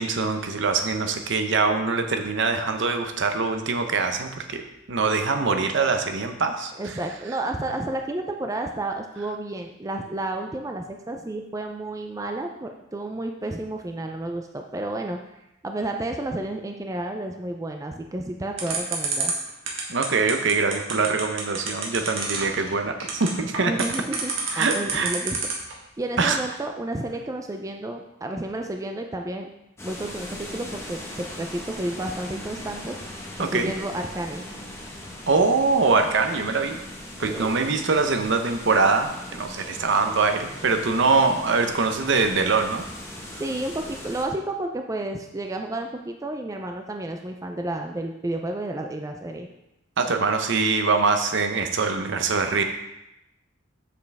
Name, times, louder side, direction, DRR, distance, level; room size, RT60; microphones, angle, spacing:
voice 1, 0.0-4.6 4.9-6.7 19.9-23.7 24.5-25.1 26.2-26.4 33.4-33.7 35.3-36.8 37.2-42.8 50.0-52.6, right 4 dB, 65° right, 6 dB, 0.8 m, -23 dB
voice 2, 6.8-15.2 15.6-19.3 23.6-25.4 26.0-29.5 29.8-33.0 33.4-34.5 37.2-37.5 43.4-49.5, right 1 dB, 15° right, 3 dB, 0.4 m, -31 dB
sound 1, 18.6-25.7, right 5 dB, 80° right, 1.6 m, -28 dB
sound 2, 29.8-44.3, left 1 dB, 15° left, 1.1 m, -39 dB
7.5 x 6.7 x 3.5 m, 0.89 s
head